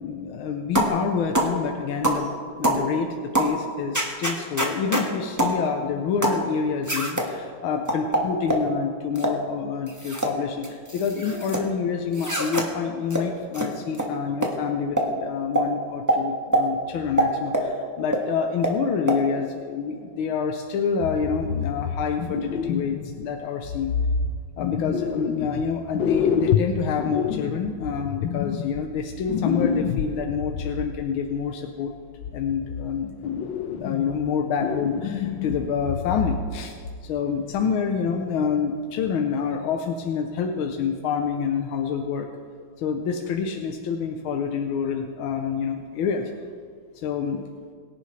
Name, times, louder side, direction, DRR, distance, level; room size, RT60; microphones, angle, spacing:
voice 1, 0.0-2.3 2.6-23.9 24.6-31.9 32.3-33.4 33.7-36.8 37.0-42.3 42.8-46.3 46.9-47.4, left 6 dB, 90° left, 4 dB, 1.6 m, -27 dB
sound 1, 0.8-1.0 1.3-1.5 2.0-2.2 2.6-2.8 3.3-3.5 3.9-5.1 5.4-5.6 6.2-6.4 6.9-7.3 7.9-8.7 9.2-9.4 9.9-10.3 10.6-11.6 12.1-12.7 13.1-13.2 13.5-13.7 13.9-14.1 14.4-14.5 15.0-15.1 15.6-15.7 16.1-16.2 16.5-16.6 17.2-17.7 18.1-18.2 18.6-18.8 19.1-19.2, right 1 dB, 10° right, 1.4 m, -23 dB
sound 2, 21.0-23.3 23.6-25.7 25.9-30.9 31.9-32.9 33.2-34.3 34.6-36.6 36.8-37.0 37.6-37.7, left 6 dB, 70° left, 1.4 m, -28 dB
22.5 x 10.5 x 3.3 m, 2.2 s
omnidirectional pair, 2.2 m